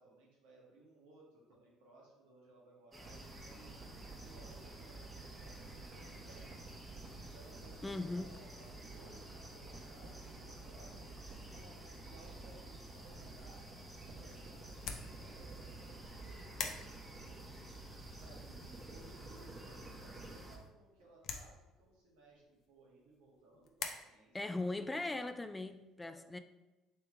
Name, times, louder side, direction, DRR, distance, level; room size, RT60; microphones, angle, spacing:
voice 1, 0.0-6.5 7.1-13.6 14.1-17.7 18.1-24.5 26.0-26.4, right 2 dB, 80° right, -3 dB, 1.3 m, -62 dB
sound 1, 2.9-20.6, right 1 dB, 15° right, 1.0 m, -52 dB
sound 2, 3.0-20.3, right 3 dB, 45° right, 1.0 m, -54 dB
voice 2, 7.8-8.3 24.3-26.4, left 2 dB, 15° left, 9 dB, 0.3 m, -39 dB
sound 3, 13.4-23.9, left 6 dB, 60° left, 0.6 m, -49 dB
3.4 x 3.3 x 4.3 m, 1.0 s
hypercardioid pair, 65°, 0 cm